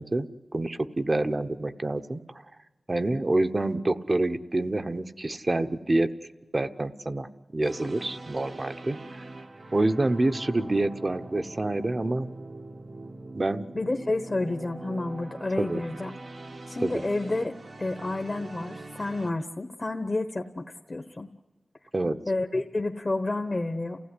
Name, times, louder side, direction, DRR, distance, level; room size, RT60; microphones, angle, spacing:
voice 1, 0.0-2.4 2.9-6.1 6.5-9.0 9.7-12.3 13.3-13.7 15.6-15.8 16.8-16.9 21.9-22.2, right 2 dB, 45° right, 8 dB, 1.0 m, -27 dB
sound 1, 7.6-19.3, right 2 dB, 75° right, 1.5 m, -43 dB
voice 2, 13.7-16.1 16.7-21.3 22.3-24.0, left 2 dB, 45° left, 5 dB, 1.1 m, -30 dB
29.0 x 16.0 x 9.8 m, 1.2 s
wide cardioid pair, 55°, 0 cm